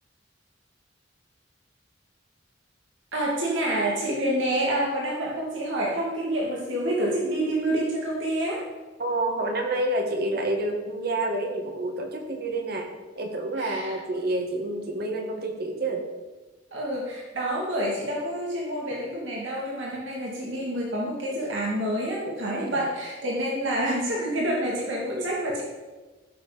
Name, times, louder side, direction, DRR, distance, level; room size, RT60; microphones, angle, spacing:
voice 1, 3.1-8.7 13.6-14.0 16.7-25.6, right 1 dB, 80° right, -3 dB, 2.5 m, -28 dB
voice 2, 9.0-12.9 13.2-16.0 22.5-22.8 25.1-25.3, right 2 dB, 55° right, 2 dB, 2.0 m, -28 dB
15.0 x 6.9 x 5.2 m, 1.3 s
head